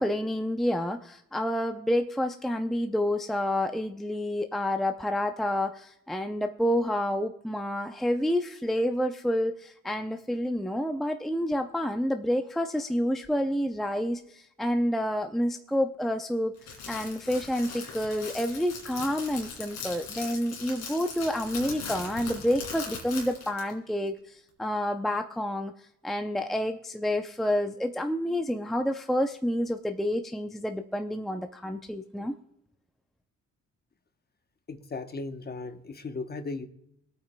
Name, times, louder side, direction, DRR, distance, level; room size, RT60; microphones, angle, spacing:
voice 1, 0.0-16.5 16.9-25.7 26.0-32.4, equal, ahead, 6 dB, 0.5 m, -29 dB
Crackle, 16.6-23.7, left 5 dB, 85° left, 2.7 m, -40 dB
voice 2, 34.7-36.7, left 3 dB, 30° left, 8 dB, 0.9 m, -36 dB
25.0 x 8.8 x 2.2 m, 0.76 s
cardioid pair, 90°, 30 cm